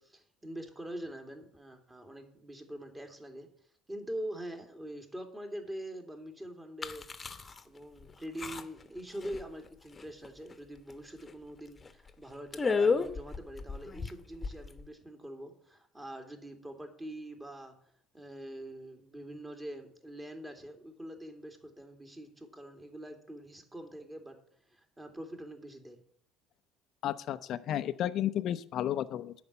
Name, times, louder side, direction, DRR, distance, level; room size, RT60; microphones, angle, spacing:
voice 1, 0.0-3.5 3.9-7.1 7.6-17.7 18.1-24.4 24.7-26.0, right 1 dB, 15° right, 4 dB, 2.5 m, -44 dB
sound 1, 6.8-7.6 8.0-8.1 8.4-8.9 9.2-9.7 10.0-10.5 10.9-11.0 11.3-11.4 11.9-12.1 12.5-14.9, left 4 dB, 25° left, 1.1 m, -32 dB
voice 2, 27.0-29.3, left 11 dB, 55° left, 14 dB, 0.6 m, -32 dB
10.5 x 5.1 x 8.2 m, 0.64 s
hypercardioid pair, 60°, 0 cm